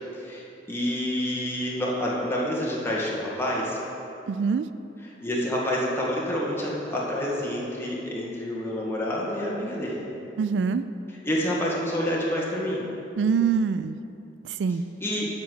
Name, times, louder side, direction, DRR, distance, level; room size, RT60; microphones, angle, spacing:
voice 1, 0.2-3.8 5.0-10.1 11.2-12.8 15.0-15.3, equal, 15° left, -5 dB, 1.6 m, -28 dB
voice 2, 4.3-4.7 10.4-10.8 13.2-14.0 14.4-14.8, right 6 dB, 80° right, 12 dB, 0.3 m, -24 dB
10.5 x 4.2 x 7.7 m, 2.8 s
head